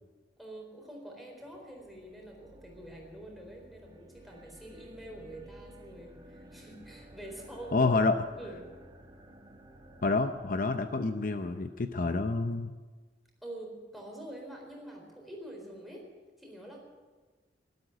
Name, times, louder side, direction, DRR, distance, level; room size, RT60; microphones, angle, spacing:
voice 1, 0.4-7.9 8.3-8.7 13.4-16.1 16.4-16.8, right 1 dB, ahead, -1 dB, 4.1 m, -46 dB
sound 1, 1.4-11.9, right 1 dB, 25° right, 1.6 m, -54 dB
voice 2, 7.7-8.2 10.0-12.7, left 3 dB, 50° left, 8 dB, 0.6 m, -28 dB
13.0 x 12.0 x 8.9 m, 1.3 s
head